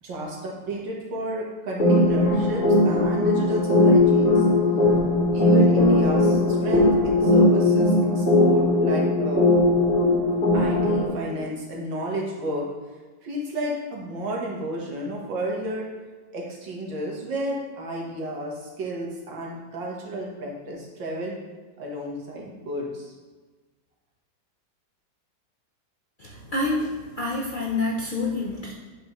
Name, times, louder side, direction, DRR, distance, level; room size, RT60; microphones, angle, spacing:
voice 1, 0.0-4.5 5.3-9.5 10.5-12.7 13.2-15.9 16.3-21.4 21.8-23.1, right 1 dB, 80° right, -3 dB, 2.1 m, -32 dB
sound 1, 1.8-11.1, left 2 dB, 45° left, 2.3 m, -19 dB
voice 2, 26.2-28.7, left 2 dB, 60° left, -3 dB, 0.5 m, -27 dB
8.2 x 5.5 x 3.1 m, 1.3 s
omnidirectional pair, 2.0 m